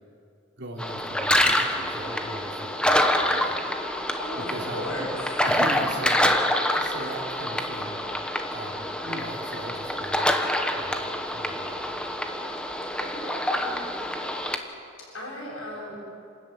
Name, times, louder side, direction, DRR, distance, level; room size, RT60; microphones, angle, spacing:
voice 1, 0.6-3.6 4.3-4.8 5.4-8.0 8.5-10.4 10.7-12.2, right 1 dB, 65° right, -1 dB, 3.5 m, -39 dB
sound 1, 0.8-14.6, left 1 dB, 5° left, 1.4 m, -26 dB
voice 2, 4.2-5.1 12.9-13.9 15.0-16.0, left 1 dB, 90° left, -6 dB, 7.8 m, -36 dB
29.0 x 14.0 x 9.6 m, 2.5 s
head